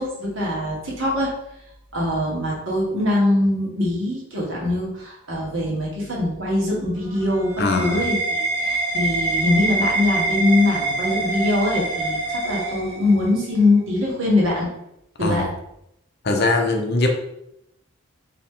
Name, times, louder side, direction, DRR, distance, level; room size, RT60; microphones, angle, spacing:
voice 1, 0.0-1.3 1.9-14.7 15.2-15.5, left 2 dB, 65° right, -4 dB, 1.7 m, -22 dB
sound 1, 7.0-13.4, right 2 dB, 30° right, 1.7 m, -25 dB
voice 2, 7.6-8.0 15.2-15.5 16.2-17.1, left 2 dB, 50° left, 3 dB, 0.7 m, -21 dB
4.4 x 3.0 x 3.8 m, 0.80 s
head